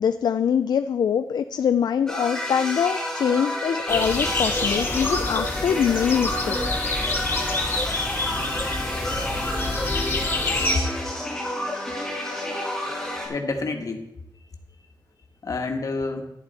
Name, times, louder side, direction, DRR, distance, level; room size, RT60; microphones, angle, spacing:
voice 1, 0.0-6.6, left 8 dB, 70° left, 9 dB, 0.4 m, -23 dB
sound 1, 2.1-13.3, left 1 dB, 5° left, 4.2 m, -30 dB
sound 2, 3.9-10.8, left 2 dB, 30° left, 1.7 m, -27 dB
voice 2, 8.7-9.3 13.3-14.0 15.4-16.2, left 3 dB, 50° left, 4 dB, 1.4 m, -30 dB
11.0 x 11.0 x 4.1 m, 0.86 s
wide cardioid pair, 180°, 7 cm